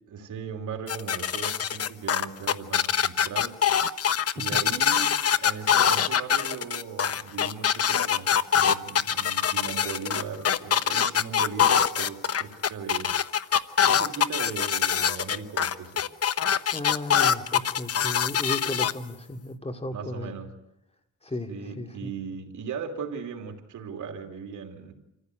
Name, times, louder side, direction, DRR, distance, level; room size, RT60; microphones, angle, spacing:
voice 1, 0.1-3.6 4.3-13.6 13.8-16.0 19.9-20.5 21.5-24.9, right 6 dB, 90° right, 4 dB, 3.0 m, -38 dB
sound 1, 0.9-18.9, left 8 dB, 55° left, 0.9 m, -23 dB
voice 2, 16.7-20.3 21.2-21.5 21.8-22.1, left 2 dB, 20° left, 6 dB, 2.7 m, -35 dB
27.5 x 15.0 x 9.2 m, 0.87 s
cardioid pair, 85°, 29 cm